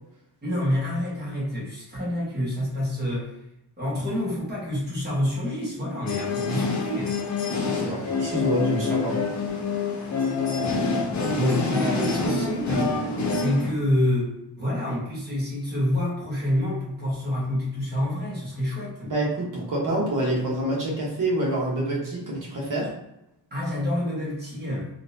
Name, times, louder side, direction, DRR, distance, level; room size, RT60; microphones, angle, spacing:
voice 1, 0.4-3.3 3.8-7.1 11.3-12.9 13.3-19.1 23.5-24.9, left 1 dB, 25° right, -7 dB, 1.4 m, -27 dB
sound 1, 6.1-13.7, left 3 dB, 45° left, 0.6 m, -26 dB
voice 2, 7.6-9.3 19.0-22.9, right 1 dB, 50° right, -4 dB, 1.2 m, -27 dB
3.9 x 2.5 x 2.7 m, 0.85 s
wide cardioid pair, 170°, 42 cm